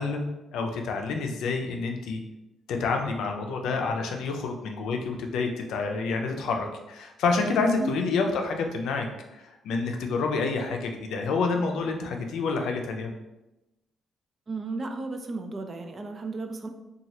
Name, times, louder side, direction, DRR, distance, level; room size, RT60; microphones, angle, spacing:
voice 1, 0.0-2.2 2.7-9.1 9.6-13.1, left 4 dB, 80° left, 3 dB, 0.4 m, -28 dB
voice 2, 14.5-16.7, right 3 dB, 40° right, 5 dB, 0.4 m, -34 dB
3.0 x 2.3 x 2.7 m, 0.97 s
cardioid pair, 90°, 0 cm